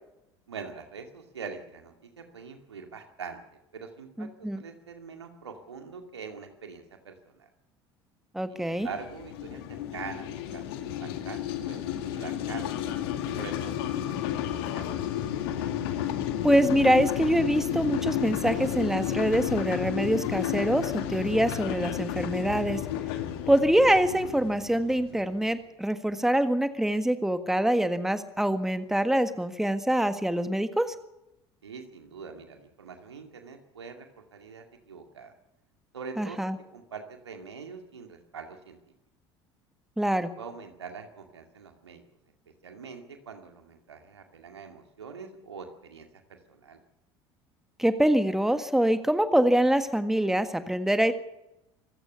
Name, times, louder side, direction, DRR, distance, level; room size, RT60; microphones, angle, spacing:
voice 1, 0.5-3.4 3.7-7.5 8.5-12.8 13.3-14.9 31.6-35.3 35.9-36.4 36.7-38.8 40.4-42.0 42.6-46.8, right 5 dB, 75° right, 6 dB, 2.3 m, -43 dB
voice 2, 4.2-4.6 8.3-8.9 16.4-22.8 23.5-30.9 36.2-36.6 40.0-40.3 47.8-51.1, right 1 dB, 5° right, 10 dB, 1.6 m, -25 dB
sound 1, 8.7-25.4, left 11 dB, 60° left, 2.1 m, -32 dB
25.5 x 16.0 x 7.0 m, 0.89 s
figure-of-eight pair, 65°, 14 cm